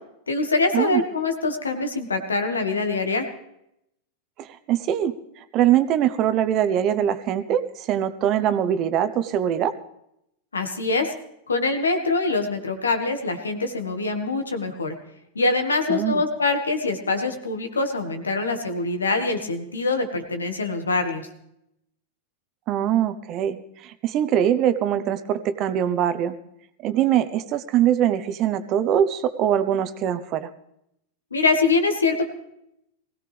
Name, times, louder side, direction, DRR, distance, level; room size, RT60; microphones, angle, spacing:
voice 1, 0.3-3.3 10.5-11.1 11.5-15.0 15.4-21.3 31.3-32.3, left 3 dB, 85° left, 6 dB, 1.8 m, -24 dB
voice 2, 4.4-5.1 5.5-9.7 15.9-16.2 22.7-26.3 26.8-30.5, right 10 dB, 40° right, 12 dB, 1.0 m, -22 dB
20.0 x 16.5 x 3.5 m, 0.80 s
hypercardioid pair, 95°, 0 cm